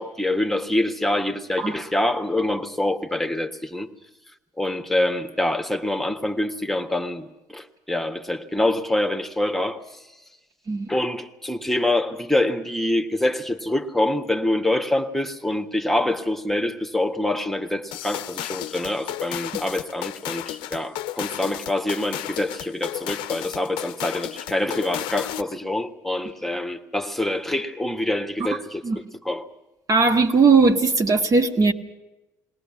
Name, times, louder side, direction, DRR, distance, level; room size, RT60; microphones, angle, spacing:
voice 1, 0.0-3.9 4.6-10.1 10.9-28.8 29.2-29.5, left 1 dB, 5° left, 1.5 m, -25 dB
sound 1, 17.9-25.6, left 15 dB, 70° left, 0.7 m, -33 dB
voice 2, 29.9-31.7, right 4 dB, 40° right, 1.7 m, -18 dB
21.0 x 18.0 x 8.6 m
hypercardioid pair, 65°, 9 cm